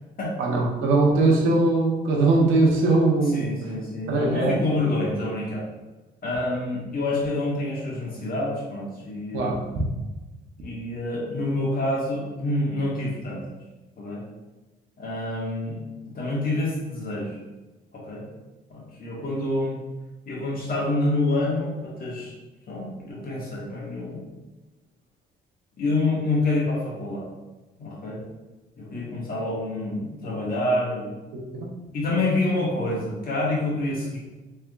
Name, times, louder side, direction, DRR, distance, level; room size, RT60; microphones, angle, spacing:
voice 1, 0.4-3.5 4.1-4.8 9.3-9.5 31.5-31.7, right 2 dB, 85° right, -1 dB, 0.8 m, -21 dB
voice 2, 3.3-5.6 6.2-9.8 10.6-13.4 14.0-14.2 15.0-15.8 16.1-17.4 17.9-18.2 18.7-19.7 20.2-22.3 22.7-24.2 25.8-27.3 27.8-28.2 28.8-31.2 31.9-34.2, left 2 dB, 50° left, -5 dB, 1.4 m, -27 dB
3.4 x 3.4 x 2.4 m, 1.1 s
cardioid pair, 90°, 20 cm